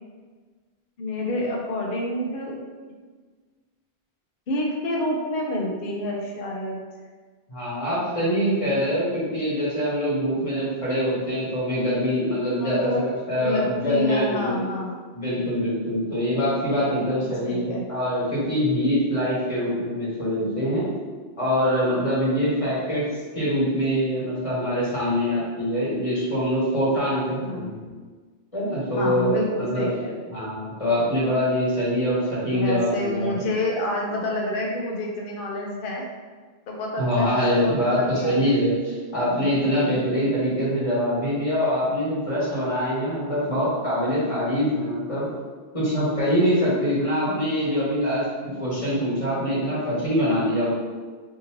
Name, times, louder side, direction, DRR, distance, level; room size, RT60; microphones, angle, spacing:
voice 1, 1.0-2.6 4.5-6.8 12.6-15.0 17.2-17.9 27.4-27.7 28.9-30.3 32.5-36.0 36.7-38.5, left 1 dB, 60° left, -1 dB, 0.7 m, -28 dB
voice 2, 7.5-14.6 15.1-20.9 21.4-23.0 23.3-27.8 28.5-29.9 30.3-33.4 37.0-45.3 45.7-48.3 48.6-50.7, equal, 35° left, -9 dB, 1.3 m, -24 dB
3.6 x 2.6 x 2.9 m, 1.4 s
omnidirectional pair, 1.1 m